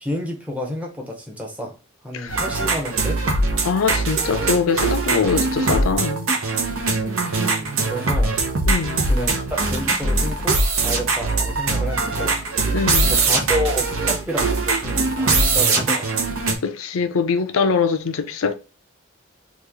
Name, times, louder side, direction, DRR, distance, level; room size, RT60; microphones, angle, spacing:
voice 1, 0.0-1.8 2.0-3.2 7.0-7.2 7.8-8.3 9.1-12.4 13.1-16.1, equal, 5° right, 0.7 m, -30 dB
sound 1, 2.3-16.6, right 3 dB, 85° right, 0.7 m, -21 dB
voice 2, 3.6-6.3 8.7-9.1 12.7-13.1 16.6-18.6, left 5 dB, 80° left, 0.5 m, -22 dB
3.0 x 2.4 x 3.4 m
head